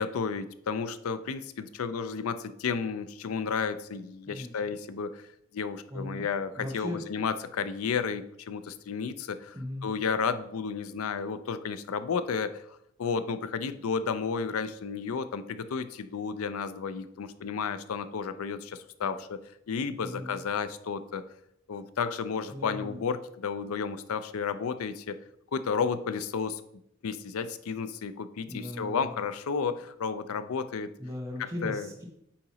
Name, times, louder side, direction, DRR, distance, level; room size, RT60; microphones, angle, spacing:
voice 1, 0.0-5.3 5.5-9.6 9.8-19.4 19.7-21.2 21.7-25.2 25.5-26.6 27.0-30.9 31.4-31.9, left 5 dB, 85° left, 12 dB, 0.4 m, -32 dB
voice 2, 5.9-6.2 6.6-7.0 9.5-9.9 20.0-20.4 22.5-23.0 28.5-29.2 31.0-32.1, left 1 dB, 15° right, -1 dB, 0.9 m, -38 dB
8.6 x 2.9 x 4.0 m, 0.78 s
head